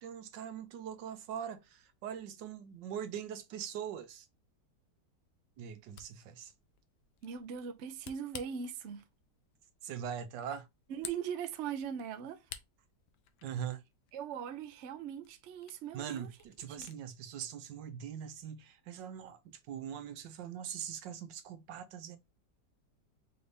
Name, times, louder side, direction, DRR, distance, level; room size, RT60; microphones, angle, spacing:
voice 1, 0.0-4.3 5.6-6.5 9.8-10.7 13.4-13.8 15.9-22.2, right 8 dB, 80° right, 1.4 m, -42 dB
Camera, 5.7-17.0, left 9 dB, 75° left, 1.2 m, -54 dB
voice 2, 7.2-9.0 10.9-12.5 14.1-16.3 16.7-16.9, right 8 dB, 65° right, 0.7 m, -40 dB
4.9 x 2.6 x 3.3 m
omnidirectional pair, 1.9 m